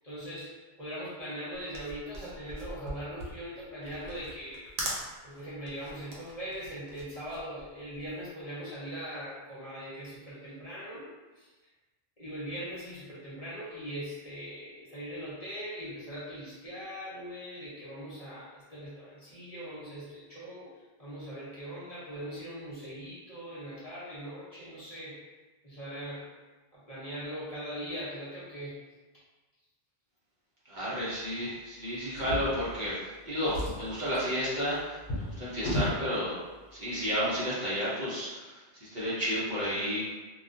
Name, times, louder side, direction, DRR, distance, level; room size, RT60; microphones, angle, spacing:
voice 1, 0.0-0.5 0.8-4.7 5.2-11.1 11.4-11.5 12.2-20.7 21.0-25.2 25.6-26.3 26.7-28.8, equal, 40° left, -10 dB, 0.8 m, -40 dB
sound 1, 1.5-8.2, right 1 dB, 90° right, 0.9 m, -41 dB
voice 2, 30.7-36.3 36.7-38.6 38.9-40.0, equal, 50° right, -9 dB, 0.7 m, -32 dB
Drawer open or close, 32.1-33.1 33.4-36.0 36.9-37.0 37.4-37.5, left 1 dB, 70° left, 0.9 m, -35 dB
2.2 x 2.2 x 2.5 m, 1.2 s
omnidirectional pair, 1.1 m